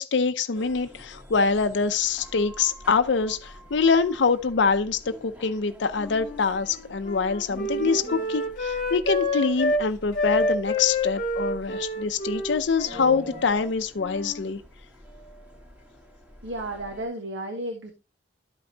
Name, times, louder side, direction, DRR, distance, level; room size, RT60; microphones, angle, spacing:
voice 1, 0.0-14.6, left 5 dB, 65° left, 0.5 m, -25 dB
sound 1, 0.5-17.1, left 1 dB, 10° right, 1.5 m, -46 dB
Wind instrument woodwind instrument, 6.0-9.8 10.1-13.7 14.0-14.5, left 1 dB, 45° left, 1.3 m, -29 dB
voice 2, 16.4-17.9, right 1 dB, 85° right, 1.3 m, -33 dB
12.5 x 5.2 x 2.8 m
head